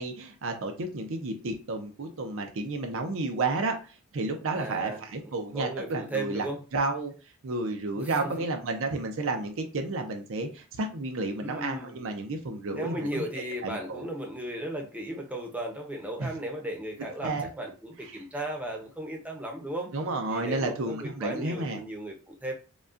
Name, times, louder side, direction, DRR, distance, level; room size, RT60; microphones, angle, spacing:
voice 1, 0.0-6.5 6.7-7.1 7.4-13.1 13.6-14.0 16.2-16.3 17.2-17.5 19.9-21.8, right 3 dB, 65° right, 4 dB, 0.6 m, -31 dB
voice 2, 4.5-6.6 8.0-8.4 11.4-12.0 12.8-19.9 20.3-22.5, right 1 dB, 5° right, 0 dB, 0.7 m, -36 dB
5.0 x 2.3 x 2.5 m, 0.34 s
head